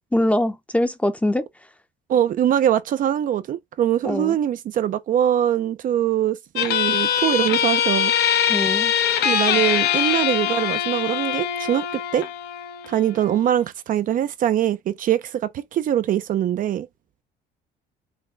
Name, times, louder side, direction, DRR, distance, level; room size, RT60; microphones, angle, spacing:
voice 1, 0.1-1.5 4.0-4.4 8.5-8.9, left 1 dB, 10° left, 0.7 m, -22 dB
voice 2, 2.1-8.1 9.2-12.3 12.9-16.9, right 11 dB, 55° right, 0.5 m, -22 dB
sound 1, 6.6-13.6, left 9 dB, 75° left, 0.8 m, -23 dB
5.5 x 2.2 x 3.4 m
cardioid pair, 110°, 17 cm